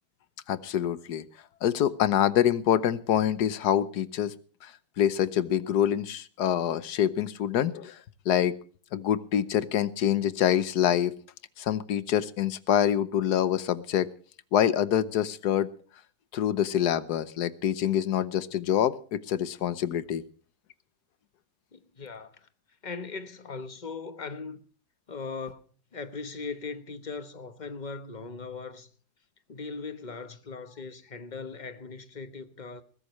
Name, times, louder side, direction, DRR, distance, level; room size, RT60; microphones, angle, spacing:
voice 1, 0.5-1.2 1.6-4.3 4.6-4.7 5.0-8.0 8.3-8.5 8.9-11.1 11.6-14.1 14.5-15.7 16.3-20.2, left 10 dB, 85° left, 1.4 m, -26 dB
voice 2, 21.7-22.5 22.8-24.6 25.1-28.9 29.5-32.8, left 4 dB, 30° left, 1.1 m, -39 dB
21.0 x 15.0 x 3.1 m
omnidirectional pair, 1.7 m